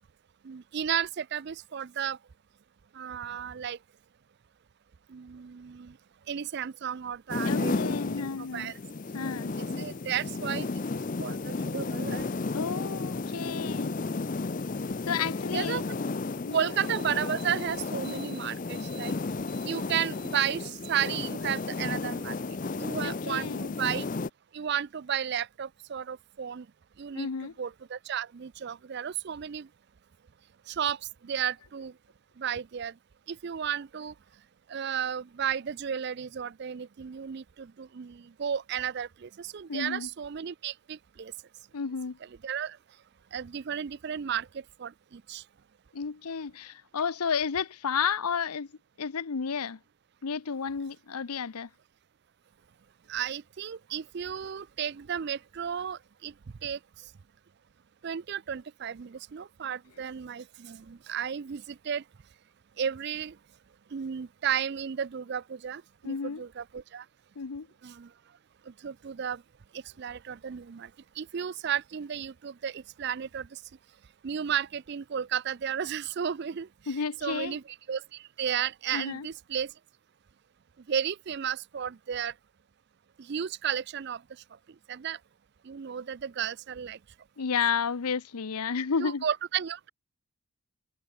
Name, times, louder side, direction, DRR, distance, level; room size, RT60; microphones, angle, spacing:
voice 1, 0.4-2.2 3.0-3.8 5.1-5.9 6.3-8.0 8.5-8.7 9.6-10.7 11.2-12.3 15.5-15.8 16.5-19.1 19.6-22.3 22.8-24.0 24.5-26.7 27.0-27.3 27.6-29.7 30.7-31.0 31.2-31.9 32.4-32.9 33.3-34.1 34.7-41.3 42.4-42.8 43.3-44.5 44.8-45.4 53.1-56.3 56.6-56.8 58.0-62.0 62.8-63.3 63.9-67.0 67.8-68.1 68.8-69.4 70.0-70.9 71.2-73.5 74.2-76.7 77.2-77.6 77.9-78.0 78.4-79.7 80.9-82.3 83.3-84.2 84.9-85.2 85.7-87.0 89.0-89.9, right 8 dB, 50° right, 0.4 m, -33 dB
sound 1, 7.3-24.3, left 3 dB, 35° left, 0.5 m, -33 dB
voice 2, 7.4-8.7 9.1-9.5 12.5-13.9 15.1-15.8 16.4-16.7 23.0-23.7 27.1-27.5 39.7-40.1 41.7-42.2 45.9-48.7 49.0-49.8 50.2-51.7 66.0-66.4 67.4-67.7 76.9-77.6 78.9-79.3 87.4-89.2, left 6 dB, 85° left, 0.7 m, -32 dB
head